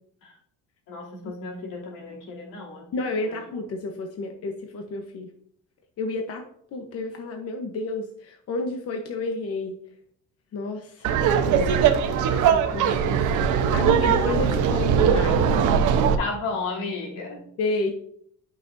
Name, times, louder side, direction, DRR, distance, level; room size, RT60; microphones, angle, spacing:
voice 1, 0.9-2.9 3.3-3.4 15.5-15.6 16.2-17.5, left 3 dB, 90° left, -2 dB, 3.1 m, -33 dB
voice 2, 2.9-5.3 6.0-6.4 6.7-9.7 10.5-11.2 11.5-11.8 12.5-15.4 17.6-17.9, left 3 dB, 50° left, 3 dB, 1.1 m, -30 dB
Laughter, 11.0-16.1, right 7 dB, 75° right, 1.0 m, -20 dB
12.0 x 5.9 x 2.7 m, 0.65 s
cardioid pair, 150°, 30 cm